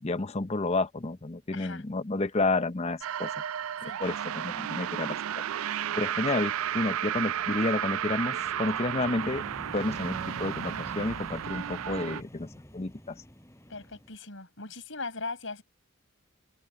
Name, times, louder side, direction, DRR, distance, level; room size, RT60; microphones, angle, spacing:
voice 1, 0.0-3.3 4.0-5.2 6.0-9.4 9.7-12.5 12.7-13.2, left 2 dB, 30° left, 0.8 m, -30 dB
sound 1, 1.1-1.6 1.9-2.7 3.0-14.2, equal, 15° left, 5.5 m, -49 dB
voice 2, 1.5-1.8 3.8-4.0 13.7-15.6, left 3 dB, 65° left, 6.7 m, -39 dB
sound 2, 3.0-12.2, right 10 dB, 90° right, 0.4 m, -33 dB
head